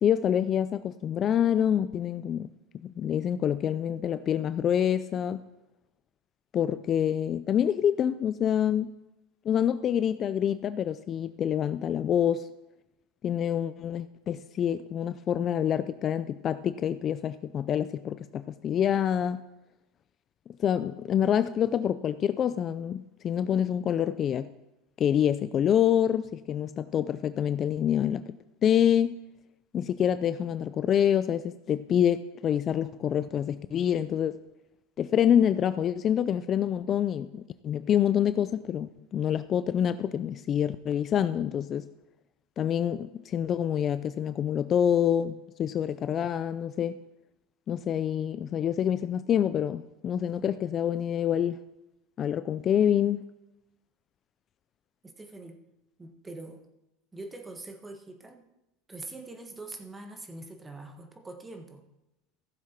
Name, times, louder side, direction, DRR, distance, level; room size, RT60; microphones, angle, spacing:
voice 1, 0.0-2.5 2.8-5.4 6.5-8.9 9.5-12.5 13.2-19.4 20.6-24.5 25.0-28.4 28.6-29.2 29.7-34.4 35.0-41.9 42.6-47.0 47.7-51.6 52.2-53.2, left 9 dB, 35° left, 0.4 m, -26 dB
voice 2, 55.0-55.6 56.0-56.6 57.1-58.5 58.9-61.8, right 2 dB, 15° right, 1.5 m, -43 dB
15.0 x 7.3 x 4.5 m
supercardioid pair, 120°, 0 cm